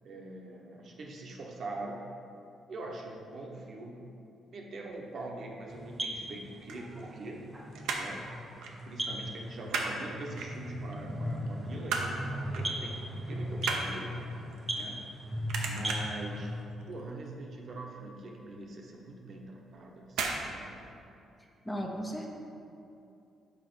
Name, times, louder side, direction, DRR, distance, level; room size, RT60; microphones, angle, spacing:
voice 1, 0.0-2.1 2.7-4.0 4.5-7.4 8.0-8.3 8.8-14.2 14.7-15.1 15.6-16.6 16.8-20.8, right 2 dB, 55° right, -1 dB, 0.9 m, -43 dB
sound 1, 5.7-16.6, equal, 15° right, 0.9 m, -38 dB
sound 2, 6.5-7.5 7.7-8.2 8.6-8.8 9.1-9.9 10.4-10.9 11.4-12.2 12.5-12.8 13.1-15.2 15.5-16.2 16.7-17.0 17.3-17.4 17.7-17.8 18.3-18.4 19.2-19.5 20.1-20.4 20.7-20.8, right 4 dB, 85° right, 0.7 m, -35 dB
voice 2, 21.7-22.3, equal, 10° left, 1 dB, 0.7 m, -35 dB
5.8 x 4.1 x 5.3 m, 2.7 s
cardioid pair, 90°, 0 cm